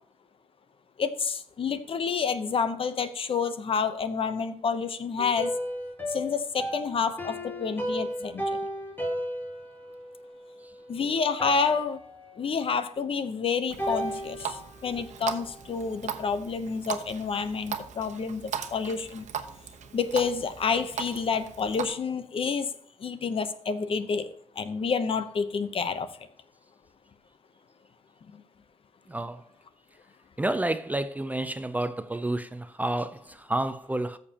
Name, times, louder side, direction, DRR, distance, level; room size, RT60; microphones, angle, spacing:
voice 1, 1.0-5.5 6.1-8.6 10.9-12.0 12.4-19.3 19.9-22.7 23.0-24.3 24.6-26.1, left 5 dB, 50° left, 0.8 m, -29 dB
sound 1, 5.2-11.0 11.4-12.6 13.8-16.0, equal, 15° left, 2.3 m, -35 dB
Water tap faucet, 13.7-21.9, right 7 dB, 75° right, 1.0 m, -38 dB
voice 2, 29.1-29.5 30.4-34.2, right 1 dB, 15° right, 0.5 m, -30 dB
14.0 x 6.8 x 2.9 m
cardioid pair, 115°, 12 cm